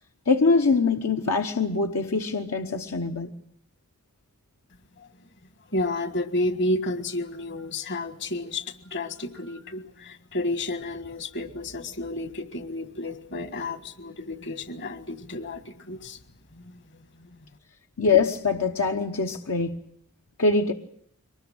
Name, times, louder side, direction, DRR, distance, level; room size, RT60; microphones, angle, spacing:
voice 1, 0.3-3.3 18.0-19.8 20.4-20.7, left 4 dB, 70° left, 1.1 m, -23 dB
voice 2, 5.7-16.2 16.5-16.8 17.2-17.3, left 2 dB, 55° left, 1.7 m, -31 dB
23.5 x 20.0 x 8.8 m
head